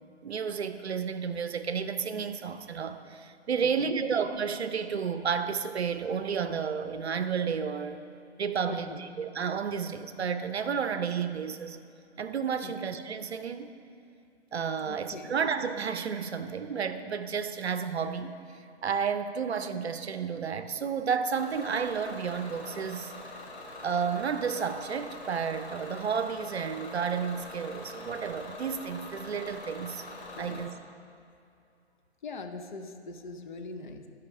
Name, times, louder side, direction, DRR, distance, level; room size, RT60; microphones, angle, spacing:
voice 1, 0.2-8.0 8.4-11.8 12.2-13.7 14.5-23.1 23.8-30.0 30.4-30.7, right 6 dB, 70° right, 10 dB, 0.6 m, -31 dB
voice 2, 3.6-3.9 8.7-9.0 12.6-12.8 14.8-15.3 30.4-30.6 32.2-34.1, left 3 dB, 45° left, 5 dB, 0.7 m, -42 dB
Bus / Engine, 21.4-30.7, left 2 dB, 65° left, 1.7 m, -44 dB
11.5 x 4.9 x 4.7 m, 2.5 s
figure-of-eight pair, 130°, 34 cm